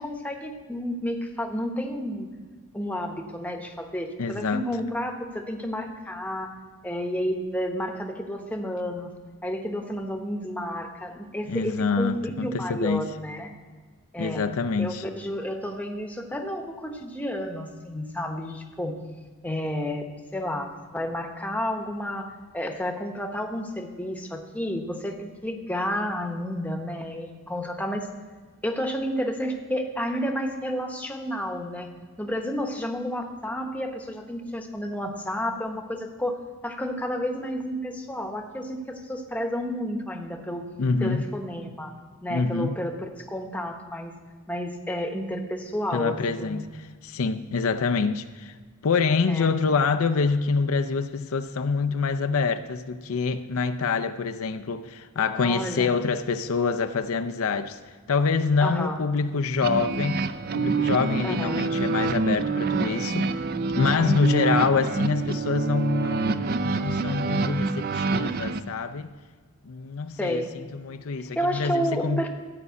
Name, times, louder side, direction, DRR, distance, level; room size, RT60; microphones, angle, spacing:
voice 1, 0.0-2.3 2.7-6.5 6.8-9.1 9.4-13.5 14.1-14.4 14.8-19.0 19.4-28.1 28.6-31.9 32.2-36.4 36.6-40.7 41.0-41.9 42.2-44.1 44.5-46.6 49.3-49.5 55.4-55.9 58.6-59.0 61.2-61.6 70.2-70.5 71.2-72.3, equal, 5° left, 0.9 m, -31 dB
voice 2, 4.2-4.6 11.5-13.0 14.2-15.0 40.8-41.3 42.3-42.8 45.9-48.5 48.8-57.8 58.1-60.2 60.6-63.4 63.7-69.1 69.7-72.2, left 4 dB, 70° left, 0.5 m, -26 dB
sound 1, 59.6-68.6, right 4 dB, 45° right, 0.4 m, -26 dB
13.5 x 5.4 x 8.2 m
head